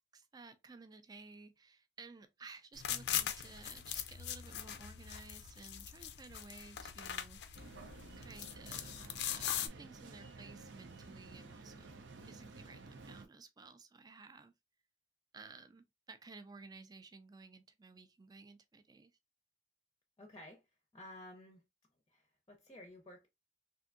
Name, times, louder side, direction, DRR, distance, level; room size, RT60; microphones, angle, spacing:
voice 1, 0.1-7.8 8.2-14.5 15.3-19.1, right 4 dB, 20° right, 0.4 m, -55 dB
sound 1, 2.7-9.7, left 10 dB, 75° left, 0.5 m, -41 dB
sound 2, 7.5-13.3, right 3 dB, 90° right, 0.6 m, -53 dB
voice 2, 20.2-20.6 20.9-21.6 22.1-23.3, left 1 dB, 25° left, 0.6 m, -53 dB
3.4 x 2.6 x 2.5 m
head